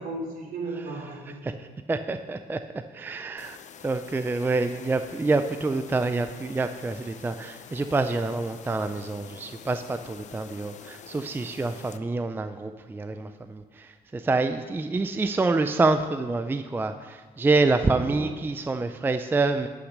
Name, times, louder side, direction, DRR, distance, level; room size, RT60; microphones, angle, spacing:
voice 1, 0.0-1.6 17.8-18.3, right 2 dB, 60° right, 0 dB, 3.3 m, -36 dB
voice 2, 1.4-2.6 2.9-3.6 3.8-19.7, right 3 dB, 10° right, 9 dB, 0.4 m, -27 dB
sound 1, 3.4-12.0, left 8 dB, 45° left, 0.6 m, -47 dB
11.5 x 6.0 x 6.5 m, 1.4 s
cardioid pair, 110°, 17 cm